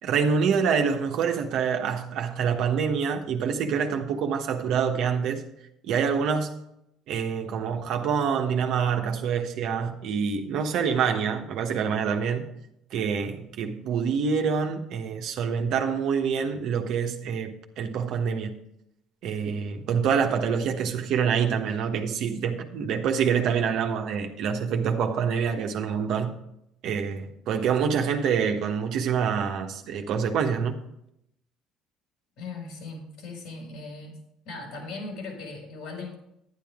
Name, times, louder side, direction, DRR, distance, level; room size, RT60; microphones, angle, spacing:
voice 1, 0.0-5.4 5.8-6.5 7.1-12.5 12.9-18.6 19.2-26.4 26.8-30.8, right 6 dB, 65° right, 1.3 m, -26 dB
voice 2, 32.4-34.2 34.4-36.2, left 3 dB, 70° left, 5.0 m, -38 dB
10.5 x 10.5 x 3.7 m
hypercardioid pair, 70°, 0 cm